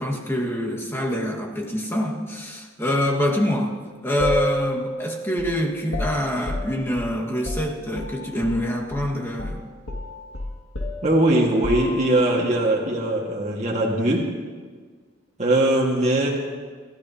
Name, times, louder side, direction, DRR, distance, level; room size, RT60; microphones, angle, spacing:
voice 1, 0.0-3.8 4.0-9.6, left 1 dB, 10° left, -1 dB, 1.7 m, -25 dB
sound 1, 4.2-8.6 8.9-9.1 9.4-12.4, equal, 70° left, 2.1 m, -31 dB
voice 2, 11.0-14.3 15.4-16.3, right 1 dB, 35° right, -3 dB, 1.8 m, -20 dB
26.5 x 13.5 x 2.9 m, 1.5 s
head